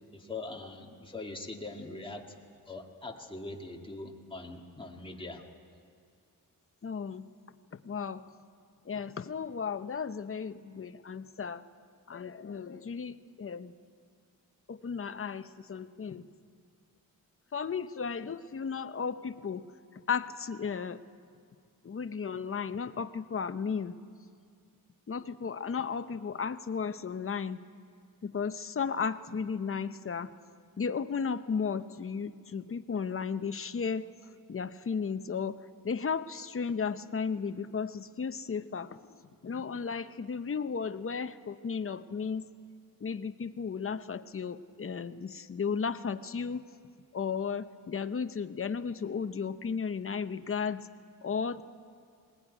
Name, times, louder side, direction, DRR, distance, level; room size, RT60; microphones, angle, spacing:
voice 1, 0.1-2.3 2.7-5.4, left 2 dB, 15° left, 1 dB, 1.9 m, -42 dB
voice 2, 6.8-7.3 7.7-8.3 8.8-11.6 12.1-13.7 14.7-16.3 17.5-19.6 20.1-21.0 21.8-24.0 25.1-27.6 28.2-30.3 30.8-34.1 34.5-35.6 35.8-42.5 43.0-46.6 47.1-50.9 51.2-51.6, left 6 dB, 40° left, 11 dB, 0.7 m, -34 dB
21.0 x 19.5 x 9.9 m, 2.2 s
wide cardioid pair, 135°, 35 cm